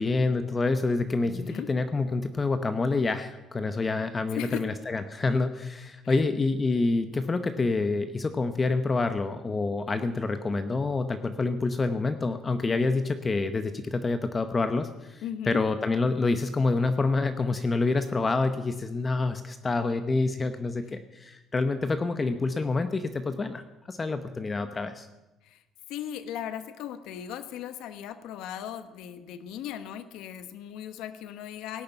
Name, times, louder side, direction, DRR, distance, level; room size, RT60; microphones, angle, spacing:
voice 1, 0.0-23.6 23.9-25.1, left 3 dB, 25° left, 9 dB, 0.8 m, -27 dB
voice 2, 1.2-1.7 4.3-4.6 6.0-6.2 15.2-15.6 25.4-25.6 25.9-31.8, left 10 dB, 80° left, 11 dB, 1.0 m, -37 dB
17.5 x 6.7 x 9.0 m, 1.0 s
cardioid pair, 115°, 0 cm